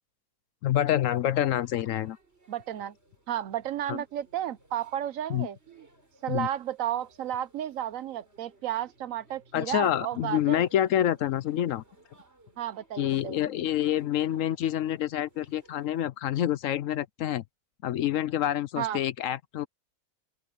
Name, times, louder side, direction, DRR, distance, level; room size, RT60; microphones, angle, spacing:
voice 1, 0.6-2.2 3.9-4.0 5.3-5.5 6.3-6.5 9.5-11.8 13.0-17.4 17.8-19.7, left 11 dB, 65° left, 0.9 m, -27 dB
sound 1, 0.9-16.0, right 2 dB, 45° right, 5.9 m, -61 dB
voice 2, 2.5-2.9 3.3-5.8 6.2-10.7 12.6-13.5 18.8-19.0, right 11 dB, 70° right, 1.0 m, -33 dB
open air
omnidirectional pair, 1.6 m